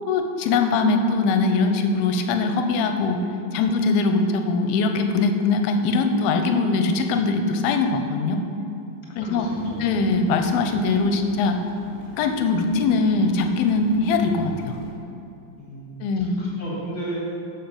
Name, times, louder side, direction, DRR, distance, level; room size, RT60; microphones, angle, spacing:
voice 1, 0.1-3.2 3.5-8.4 9.2-9.5 9.8-11.6 12.2-14.8 16.0-16.5, left 3 dB, 85° left, 6 dB, 2.6 m, -21 dB
voice 2, 9.2-9.8 15.6-16.1 16.4-17.2, right 1 dB, 45° left, -5 dB, 1.4 m, -34 dB
sound 1, 9.3-14.9, right 1 dB, 25° left, 1.5 m, -43 dB
12.5 x 5.5 x 6.5 m, 2.7 s
omnidirectional pair, 4.3 m